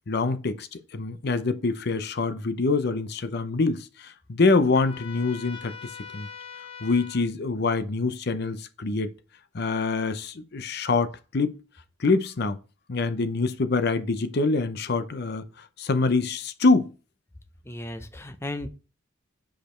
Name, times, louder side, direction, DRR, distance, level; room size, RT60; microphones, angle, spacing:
voice 1, 0.1-5.7 6.1-6.3 6.8-9.1 9.5-11.5 12.0-12.6 12.9-15.5 15.8-16.9, left 3 dB, 55° left, 0.6 m, -25 dB
Trumpet, 4.7-7.2, left 7 dB, 80° left, 1.6 m, -42 dB
voice 2, 17.7-18.7, left 1 dB, 15° left, 0.6 m, -35 dB
5.1 x 5.0 x 4.4 m
head